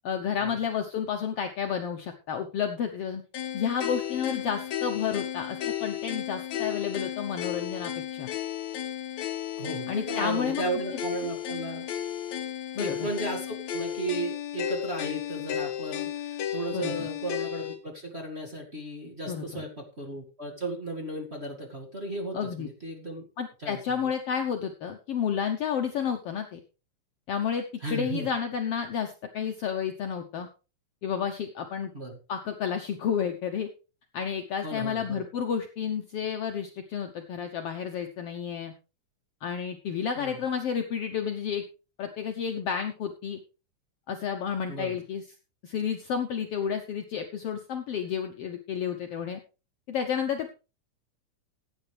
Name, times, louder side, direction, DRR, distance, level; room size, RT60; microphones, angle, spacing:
voice 1, 0.0-3.2 3.5-8.3 9.9-10.6 12.7-13.1 16.7-17.1 19.3-19.6 22.3-22.7 23.4-26.6 27.3-27.6 27.9-30.5 31.0-31.9 32.3-33.7 34.1-38.7 39.4-41.6 42.0-43.4 44.1-45.2 45.6-49.4 49.9-50.5, left 7 dB, 90° left, 4 dB, 1.3 m, -31 dB
sound 1, 3.3-17.8, left 11 dB, 60° left, 2.2 m, -34 dB
voice 2, 9.6-11.9 12.7-23.2 23.6-24.0 27.8-28.3 31.9-32.2 34.6-35.2 40.1-40.4 44.7-45.0, right 2 dB, 25° right, -1 dB, 1.6 m, -35 dB
16.0 x 9.1 x 3.4 m, 0.32 s
omnidirectional pair, 4.0 m